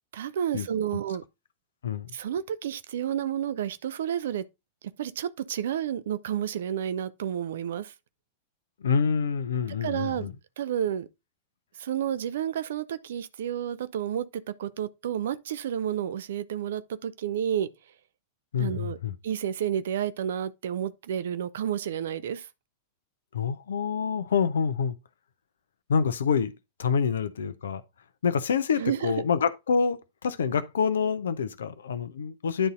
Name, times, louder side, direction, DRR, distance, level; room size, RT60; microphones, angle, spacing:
voice 1, 0.1-1.2 2.1-4.4 5.0-7.9 9.8-10.3 10.6-11.1 11.8-17.7 18.6-19.0 19.2-22.5 28.8-29.2, right 9 dB, 60° right, 0.6 m, -30 dB
voice 2, 8.8-10.3 18.5-19.1 23.3-25.0 25.9-26.5 26.8-27.8 28.2-32.7, left 6 dB, 65° left, 0.8 m, -27 dB
10.0 x 4.1 x 3.7 m
figure-of-eight pair, 90°, 0 cm